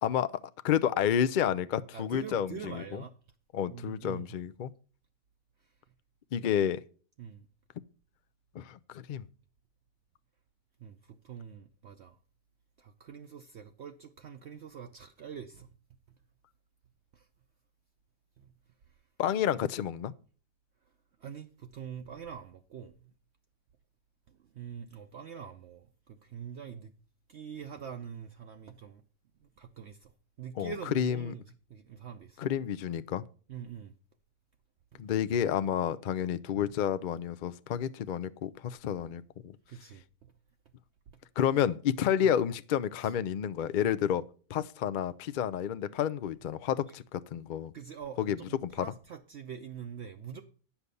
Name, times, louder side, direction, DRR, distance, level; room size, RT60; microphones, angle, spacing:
voice 1, 0.0-0.3 0.6-3.0 3.5-4.7 6.3-6.8 8.5-9.2 19.2-20.1 30.6-31.3 32.4-33.2 35.0-39.6 41.4-44.2 44.5-47.7 48.2-48.4 48.6-48.9, left 9 dB, 75° left, 0.4 m, -30 dB
voice 2, 1.9-3.1 3.7-4.3 7.2-7.5 10.8-12.2 12.8-15.7 17.1-17.3 18.4-18.5 21.2-22.9 24.3-26.9 27.3-29.0 29.4-30.1 30.4-31.4 31.7-32.5 33.5-33.9 34.9-35.0 36.5-36.7 39.7-40.3 41.1-41.2 42.2-42.3 47.7-50.4, right 7 dB, 60° right, 0.8 m, -44 dB
9.7 x 5.8 x 6.8 m
omnidirectional pair, 1.5 m